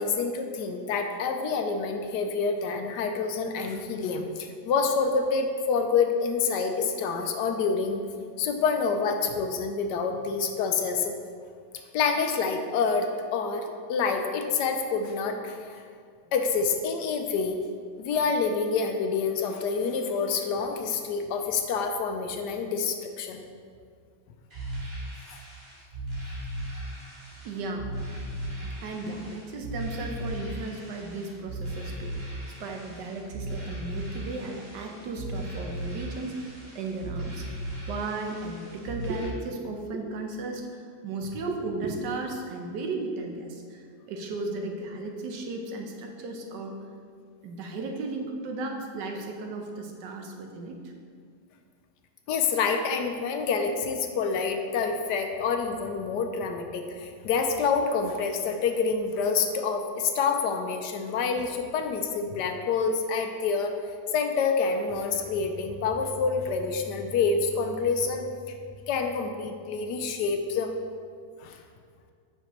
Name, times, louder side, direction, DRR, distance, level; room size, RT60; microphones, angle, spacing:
voice 1, 0.0-8.0 8.4-11.1 11.9-15.8 16.3-17.6 18.0-23.4 25.3-25.4 52.3-63.7 64.1-68.3 68.9-70.7 71.4-71.6, left 5 dB, 75° left, 5 dB, 1.2 m, -27 dB
sound 1, 24.5-39.3, right 1 dB, 35° right, 2.1 m, -37 dB
voice 2, 27.4-46.8 47.4-50.7, right 3 dB, 75° right, 3 dB, 1.4 m, -35 dB
7.6 x 5.7 x 3.0 m, 2.1 s
omnidirectional pair, 1.9 m